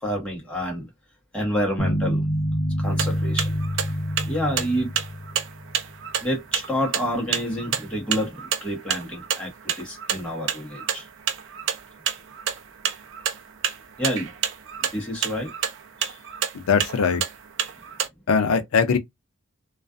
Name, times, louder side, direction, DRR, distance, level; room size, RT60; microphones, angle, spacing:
voice 1, 0.0-0.9 1.3-2.2 2.8-3.6 4.2-4.9 6.2-11.1 14.0-14.3 14.9-15.5 16.0-16.2, equal, 5° left, 1.0 m, -28 dB
sound 1, 1.8-6.0, equal, 45° left, 0.7 m, -27 dB
sound 2, 2.9-18.1, right 9 dB, 60° right, 0.4 m, -29 dB
voice 2, 16.5-17.2 18.3-19.0, left 5 dB, 85° left, 0.5 m, -21 dB
2.4 x 2.3 x 2.3 m
head